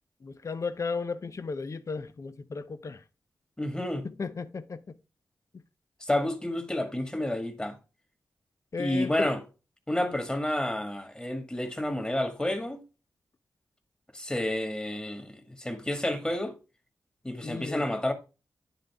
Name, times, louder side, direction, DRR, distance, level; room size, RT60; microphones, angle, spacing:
voice 1, 0.2-3.0 4.2-4.9 8.7-9.3 17.4-17.8, left 4 dB, 50° left, 0.7 m, -35 dB
voice 2, 3.6-4.1 6.0-7.8 8.8-9.4 9.9-12.8 14.1-16.5 17.2-18.1, left 1 dB, 15° left, 1.9 m, -30 dB
10.0 x 3.7 x 3.5 m
cardioid pair, 55°, 7 cm